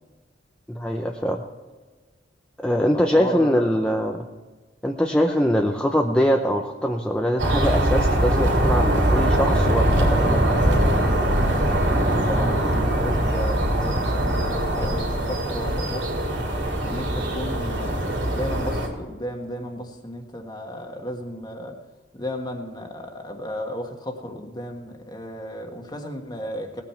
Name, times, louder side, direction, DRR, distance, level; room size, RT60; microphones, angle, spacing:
voice 1, 0.7-1.4 2.6-4.3 4.8-10.4, equal, 5° left, 1 dB, 0.7 m, -23 dB
voice 2, 2.9-3.7 12.0-16.1 16.8-21.8 22.1-26.8, left 1 dB, 20° left, 3 dB, 1.5 m, -34 dB
sound 1, 7.4-18.9, right 1 dB, 75° right, 3.3 m, -22 dB
19.0 x 9.0 x 4.5 m, 1.4 s
head